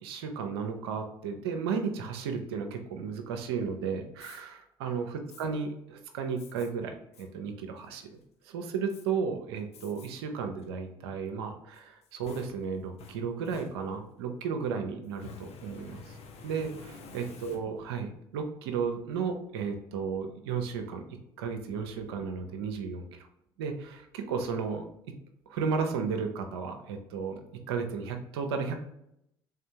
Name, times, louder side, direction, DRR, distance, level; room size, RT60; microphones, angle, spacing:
voice 1, 0.0-8.1 8.4-16.1 16.4-21.0 21.4-23.2 23.6-24.9 25.5-28.8, right 5 dB, 80° right, 5 dB, 0.5 m, -34 dB
Fire, 4.2-4.4 5.3-5.5 6.4-6.7 7.1-7.3 7.8-8.2 8.9-9.0 9.7-10.1 10.6-10.7 11.7-14.2 15.1-18.0, left 4 dB, 55° left, 0.7 m, -50 dB
3.5 x 3.3 x 2.7 m, 0.78 s
hypercardioid pair, 60°, 13 cm